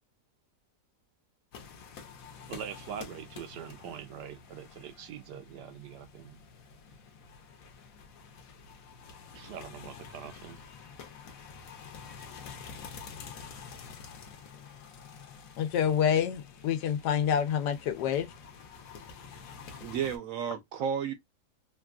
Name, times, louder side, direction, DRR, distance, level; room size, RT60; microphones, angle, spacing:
sound 1, 1.5-20.2, left 6 dB, 65° left, 1.0 m, -48 dB
voice 1, 2.5-6.4 9.3-10.6, right 9 dB, 90° right, 1.2 m, -43 dB
voice 2, 15.6-18.3, left 8 dB, 85° left, 1.2 m, -27 dB
voice 3, 19.8-21.1, right 8 dB, 65° right, 0.9 m, -32 dB
3.6 x 2.3 x 2.3 m
omnidirectional pair, 1.8 m